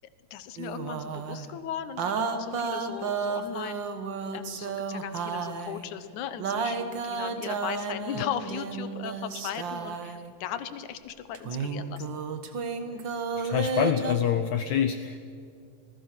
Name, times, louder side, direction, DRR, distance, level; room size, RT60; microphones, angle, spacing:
voice 1, 0.3-3.8 4.3-12.2, left 9 dB, 65° left, 11 dB, 2.1 m, -37 dB
sound 1, 0.6-1.5 2.0-5.9 6.4-10.3 11.3-14.2, right 5 dB, 75° right, 1.0 m, -32 dB
voice 2, 13.4-15.2, left 9 dB, 85° left, 9 dB, 1.6 m, -26 dB
27.5 x 19.0 x 6.1 m, 2.3 s
omnidirectional pair, 4.3 m